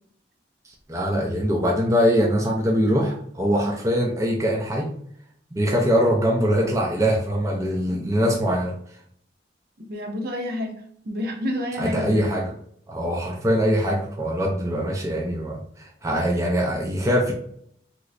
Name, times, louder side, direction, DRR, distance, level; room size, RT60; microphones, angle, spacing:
voice 1, 0.9-4.9 5.5-8.7 11.8-12.5 12.9-17.3, equal, 15° right, -1 dB, 0.5 m, -22 dB
voice 2, 9.8-12.3, left 1 dB, 55° right, 2 dB, 0.7 m, -30 dB
3.1 x 3.0 x 2.5 m, 0.65 s
head